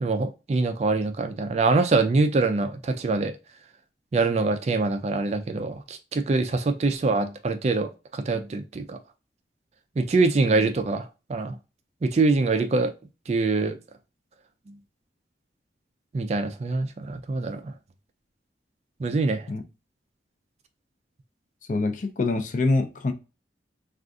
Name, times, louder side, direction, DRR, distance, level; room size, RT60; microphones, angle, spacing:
voice 1, 0.0-3.3 4.1-9.0 10.0-11.0 11.3-11.6 12.0-12.9 13.3-13.8 16.1-17.7 19.0-19.5, right 3 dB, 35° right, 0.3 m, -24 dB
voice 2, 21.7-23.1, left 3 dB, 45° left, 0.4 m, -25 dB
2.5 x 2.4 x 3.5 m
head